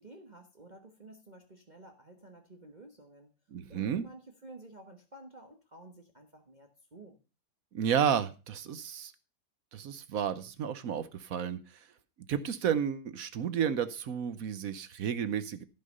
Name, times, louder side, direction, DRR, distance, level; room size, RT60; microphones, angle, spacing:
voice 1, 0.0-3.3 3.7-7.2, right 2 dB, 25° right, 3 dB, 1.3 m, -52 dB
voice 2, 3.5-4.0 7.7-9.1 9.7-11.6 12.3-15.6, right 8 dB, 60° right, 12 dB, 1.0 m, -32 dB
15.0 x 5.8 x 5.4 m, 0.33 s
omnidirectional pair, 2.0 m